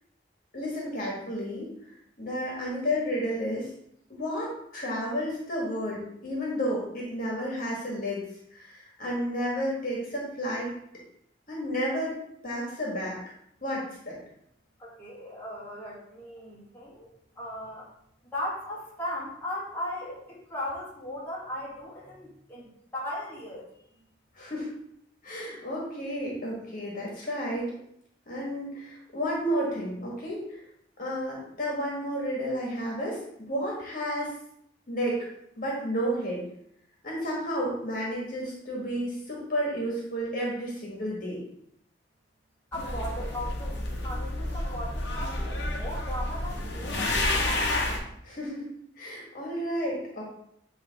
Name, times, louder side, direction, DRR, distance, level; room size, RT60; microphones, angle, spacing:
voice 1, 0.5-1.7 2.2-3.7 4.1-8.2 8.5-10.7 11.5-12.2 12.4-13.2 13.6-14.2 24.3-24.7 25.2-27.7 28.3-30.4 31.0-34.3 34.9-35.2 35.6-36.4 37.0-41.4 48.2-48.7 49.0-50.2, equal, 50° left, -3 dB, 1.7 m, -31 dB
voice 2, 14.8-17.9 18.3-23.6 42.7-47.8, left 1 dB, 10° left, -7 dB, 2.0 m, -37 dB
sound 1, 42.7-48.0, left 1 dB, 70° left, 1.1 m, -30 dB
8.9 x 3.4 x 3.5 m, 0.73 s
head